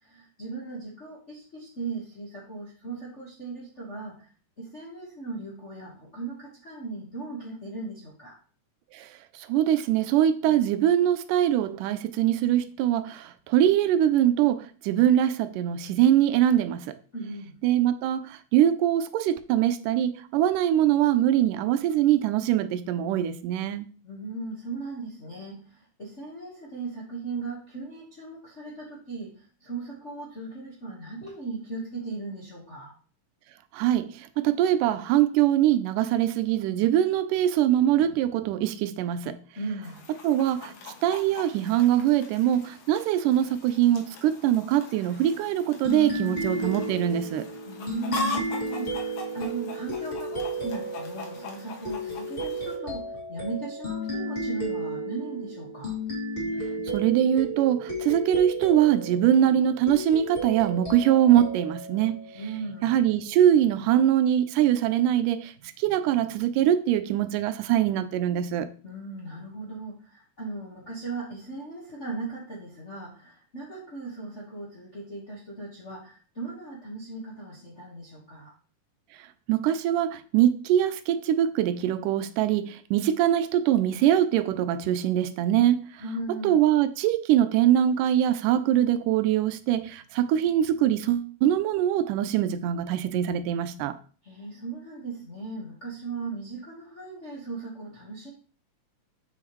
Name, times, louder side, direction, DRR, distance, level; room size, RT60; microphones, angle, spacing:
voice 1, 0.0-4.3 4.6-8.4 10.4-10.5 17.1-17.6 24.0-32.9 39.5-40.0 47.7-55.9 62.3-62.9 68.8-78.5 86.0-86.6 94.2-98.3, right 3 dB, 50° left, 0.8 m, -37 dB
voice 2, 9.3-17.0 17.6-23.9 33.7-39.4 40.1-40.7 41.0-47.5 56.4-62.2 62.8-68.7 79.5-86.0 86.3-94.0, right 11 dB, 85° right, 2.1 m, -23 dB
Chicken rooster, 39.8-52.8, left 3 dB, 65° left, 2.0 m, -41 dB
sound 1, 45.8-63.0, right 1 dB, 20° left, 1.6 m, -33 dB
7.1 x 5.7 x 3.0 m
omnidirectional pair, 3.7 m